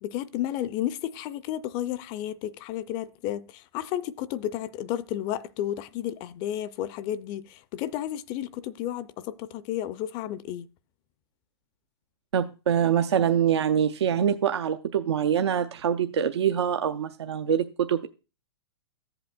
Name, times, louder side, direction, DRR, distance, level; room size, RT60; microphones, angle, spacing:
voice 1, 0.0-10.7, left 12 dB, 35° left, 0.4 m, -32 dB
voice 2, 12.3-18.1, right 8 dB, 75° right, 0.5 m, -24 dB
13.5 x 7.9 x 2.2 m
hypercardioid pair, 115°, 14 cm